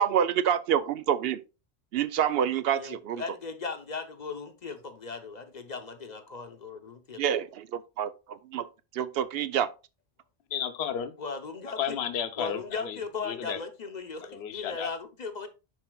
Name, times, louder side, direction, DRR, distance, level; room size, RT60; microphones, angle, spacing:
voice 1, 0.0-1.4 1.9-3.2 7.2-8.7 8.9-9.7, right 9 dB, 65° right, 0.8 m, -27 dB
voice 2, 2.7-7.2 11.2-12.0 12.4-15.5, left 4 dB, 45° left, 0.8 m, -37 dB
voice 3, 10.5-11.1 11.8-13.0 13.2-13.6 14.3-14.9, left 8 dB, 70° left, 1.0 m, -32 dB
11.0 x 4.2 x 2.2 m
omnidirectional pair, 1.1 m